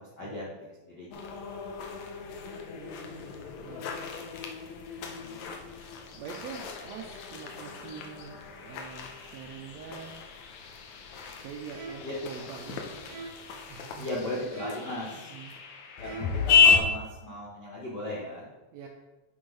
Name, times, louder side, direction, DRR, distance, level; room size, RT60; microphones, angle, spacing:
voice 1, 0.0-1.4 5.0-5.4 12.0-12.1 14.0-15.3 16.0-18.5, left 1 dB, 90° left, -5 dB, 0.9 m, -37 dB
sound 1, 1.1-16.8, left 6 dB, 75° left, 1.9 m, -31 dB
voice 2, 2.7-3.9 6.1-10.2 11.4-12.9 13.7-14.1 15.1-15.6 18.7-18.9, right 6 dB, 80° right, 2 dB, 1.5 m, -44 dB
sound 2, 11.7-12.2 13.1-13.5 14.5-15.0 16.0-16.5, right 4 dB, 65° right, 1.6 m, -43 dB
8.9 x 3.8 x 4.7 m, 1.1 s
omnidirectional pair, 3.7 m